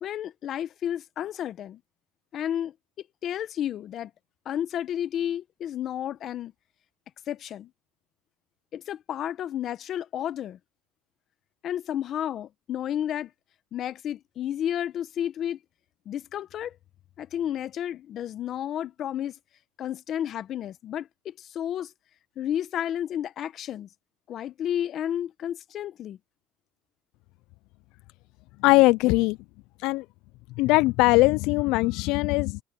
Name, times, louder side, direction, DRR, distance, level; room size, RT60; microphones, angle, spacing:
voice 1, 0.0-1.8 2.3-2.7 3.2-4.1 4.4-6.5 7.3-7.7 8.7-10.6 11.6-13.3 13.7-15.6 16.1-16.8 17.2-19.4 19.8-21.9 22.4-23.9 24.3-26.2, left 10 dB, 40° left, 1.0 m, -31 dB
voice 2, 28.6-29.4 29.8-30.0 30.6-32.6, left 22 dB, 60° left, 0.3 m, -20 dB
supercardioid pair, 130°, 0 cm